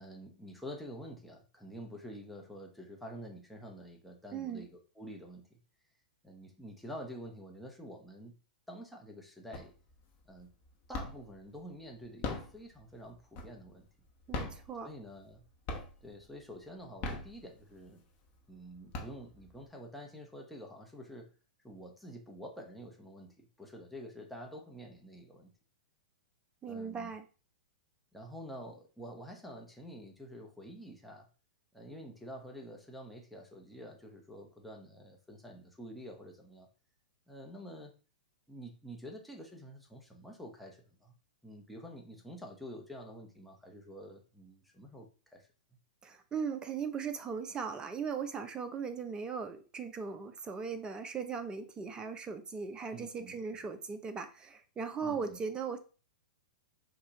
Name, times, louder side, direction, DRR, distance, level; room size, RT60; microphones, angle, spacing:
voice 1, 0.0-5.6 6.2-8.3 8.7-9.7 10.3-10.5 10.9-13.9 14.8-15.4 16.0-18.0 18.5-21.3 21.6-25.5 26.7-27.1 28.1-31.3 31.7-36.7 37.3-37.9 38.5-41.1 41.4-45.5 52.9-53.4 55.0-55.4, equal, ahead, -1 dB, 1.1 m, -48 dB
voice 2, 4.3-4.7 14.3-14.9 26.6-27.2 46.0-55.8, right 6 dB, 15° right, 8 dB, 0.6 m, -38 dB
sound 1, 9.5-10.0 10.4-11.4 12.0-13.8 14.2-15.4 15.7-16.2 16.8-17.9 18.4-18.5 18.7-19.6, left 3 dB, 35° left, 1.0 m, -40 dB
5.4 x 2.5 x 4.0 m, 0.35 s
figure-of-eight pair, 105°, 5 cm